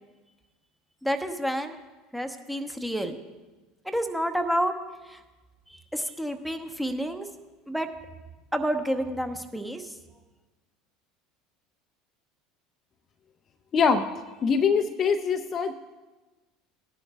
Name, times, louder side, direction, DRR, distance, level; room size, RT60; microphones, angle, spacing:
voice 1, 1.0-1.8 2.1-3.2 3.8-4.7 5.1-5.2 5.9-7.3 7.7-7.9 8.5-9.9, equal, ahead, 6 dB, 0.9 m, -29 dB
voice 2, 13.7-14.0 14.4-15.7, left 6 dB, 35° left, 7 dB, 0.5 m, -23 dB
17.0 x 10.5 x 2.3 m, 1.2 s
figure-of-eight pair, 70°, 0 cm